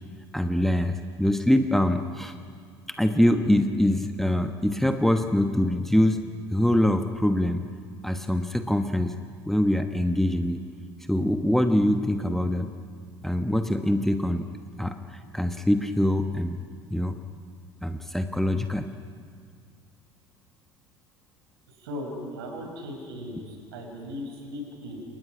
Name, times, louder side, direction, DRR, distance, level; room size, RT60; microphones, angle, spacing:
voice 1, 0.3-2.3 2.9-6.2 6.5-7.6 8.0-9.1 9.5-10.6 11.1-12.7 13.2-14.4 14.8-16.6 16.9-17.2 17.8-18.9, left 1 dB, ahead, 7 dB, 1.1 m, -24 dB
voice 2, 21.7-25.0, left 1 dB, 65° right, 3 dB, 6.0 m, -37 dB
28.5 x 24.0 x 6.1 m, 2.1 s
figure-of-eight pair, 65°, 14 cm